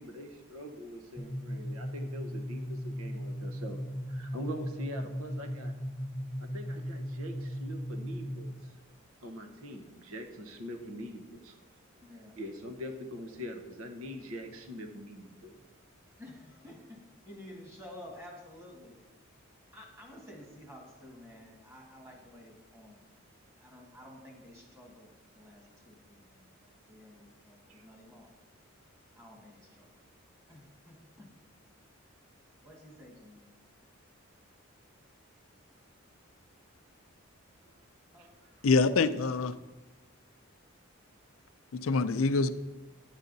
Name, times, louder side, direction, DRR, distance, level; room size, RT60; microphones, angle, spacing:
voice 1, 0.0-3.8 4.1-5.7 6.4-8.8 9.2-11.6 12.1-15.6 27.7-27.8 38.2-38.7, equal, 80° right, 4 dB, 1.0 m, -43 dB
sound 1, 1.2-8.7, equal, 10° left, 0.7 m, -37 dB
voice 2, 12.0-12.4 16.2-19.0 19.7-23.0 23.6-28.3 29.2-29.9 30.5-31.3 32.6-33.5 38.1-38.3, left 1 dB, 15° right, 0 dB, 1.7 m, -51 dB
voice 3, 38.6-39.5 41.7-42.5, left 4 dB, 70° left, 12 dB, 0.5 m, -25 dB
10.5 x 8.2 x 3.9 m, 1.2 s
head